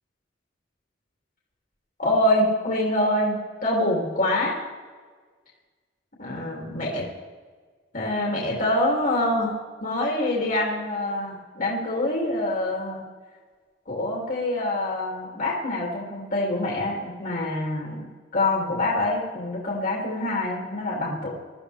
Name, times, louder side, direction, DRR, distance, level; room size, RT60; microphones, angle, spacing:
voice 1, 2.0-4.5 6.2-7.0 7.9-13.0 13.9-18.1 18.3-21.3, left 1 dB, 45° left, -3 dB, 2.6 m, -25 dB
21.0 x 13.5 x 3.4 m, 1.5 s
head